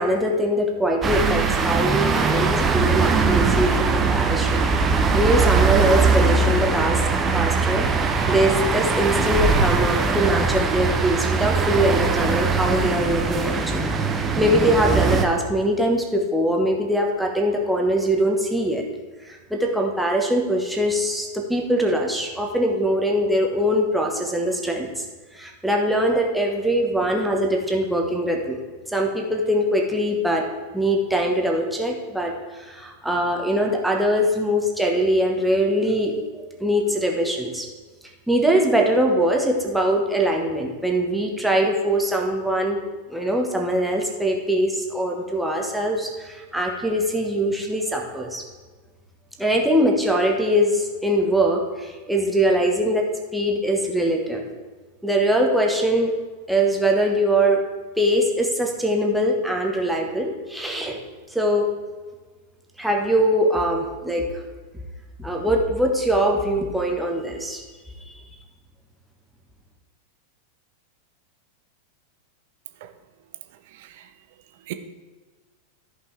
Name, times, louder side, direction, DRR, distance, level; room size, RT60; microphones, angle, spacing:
voice 1, 0.0-7.0 7.3-7.9 8.3-18.8 19.2-25.0 25.3-28.6 28.9-30.5 30.7-37.7 38.3-42.8 43.1-48.4 49.4-54.4 55.0-56.1 56.5-57.6 58.0-61.0 61.3-61.7 62.8-64.4 65.2-67.6 68.1-68.2, right 1 dB, 5° right, 1 dB, 1.3 m, -22 dB
sound 1, 1.0-15.2, right 4 dB, 20° right, 0.8 m, -21 dB
voice 2, 73.7-74.1 74.7-74.8, right 16 dB, 50° right, 9 dB, 0.7 m, -37 dB
13.5 x 5.5 x 3.4 m, 1.3 s
figure-of-eight pair, 90°, 0 cm